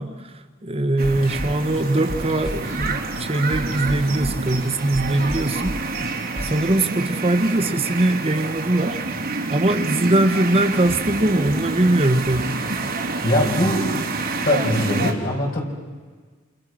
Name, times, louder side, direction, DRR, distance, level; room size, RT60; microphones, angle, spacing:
voice 1, 0.0-5.8 6.4-9.0 9.5-12.6, right 1 dB, 30° right, 8 dB, 1.1 m, -21 dB
sound 1, 1.0-6.7, equal, 75° left, 5.2 m, -33 dB
sound 2, 1.0-15.1, right 3 dB, 50° right, 3.5 m, -28 dB
voice 2, 13.2-14.0 14.4-15.6, left 1 dB, 45° left, 0 dB, 6.0 m, -21 dB
29.5 x 28.5 x 6.3 m, 1.5 s
head